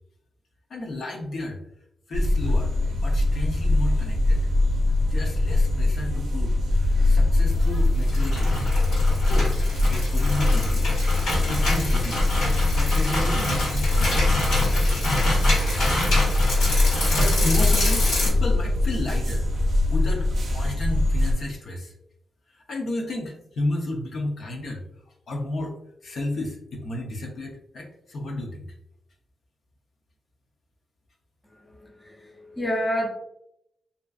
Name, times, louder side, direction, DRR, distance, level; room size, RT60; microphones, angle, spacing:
voice 1, 0.7-1.6 2.1-4.5 5.0-8.7 9.1-9.6 9.9-10.9 11.3-14.6 16.8-19.5 19.9-21.9 22.5-24.8 25.3-25.8 26.0-28.7, left 1 dB, 65° left, 0.5 m, -32 dB
sound 1, 2.1-21.3, left 2 dB, 55° right, 0.5 m, -22 dB
sound 2, 7.8-18.3, left 1 dB, 80° left, 1.2 m, -27 dB
voice 2, 31.5-33.1, equal, 10° left, 0.5 m, -29 dB
2.5 x 2.3 x 2.2 m
cardioid pair, 105°, 0 cm